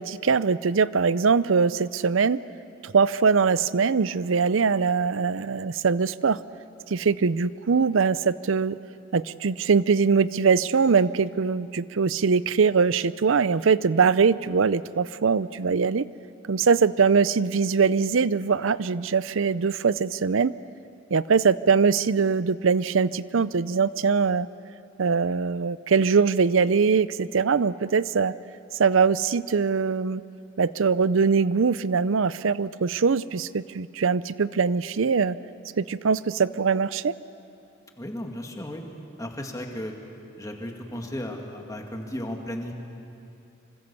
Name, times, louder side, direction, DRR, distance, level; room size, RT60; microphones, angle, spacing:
voice 1, 0.0-2.4 2.8-6.4 6.9-8.8 9.1-16.1 16.5-20.5 21.1-24.5 25.0-28.3 28.8-30.2 30.6-35.4 35.8-37.1, right 5 dB, 75° right, 17 dB, 0.6 m, -22 dB
voice 2, 38.0-38.8 39.2-39.9 40.4-42.7, left 1 dB, 15° left, 2 dB, 2.2 m, -34 dB
25.5 x 25.0 x 7.0 m, 2.6 s
head